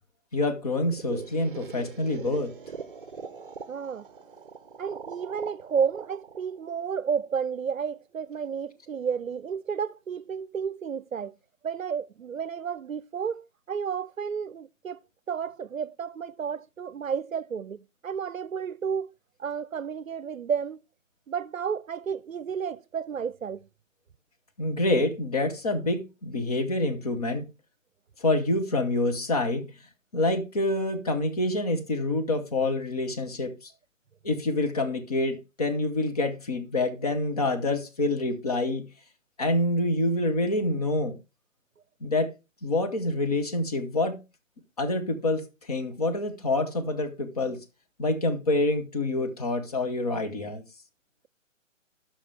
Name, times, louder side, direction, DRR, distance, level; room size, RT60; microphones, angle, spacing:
voice 1, 0.3-2.5 24.6-27.5 28.2-29.7 30.1-33.7 34.2-38.9 39.4-41.2 42.0-42.3 42.6-44.2 44.8-47.6 48.0-50.6, left 2 dB, 30° left, 1.0 m, -27 dB
sound 1, 0.6-7.5, right 6 dB, 40° right, 0.7 m, -42 dB
voice 2, 3.7-4.1 4.8-11.3 11.6-15.0 15.3-19.1 19.4-20.8 21.3-23.7, right 7 dB, 90° right, 0.5 m, -31 dB
12.0 x 5.8 x 3.3 m
figure-of-eight pair, 145°, 39 cm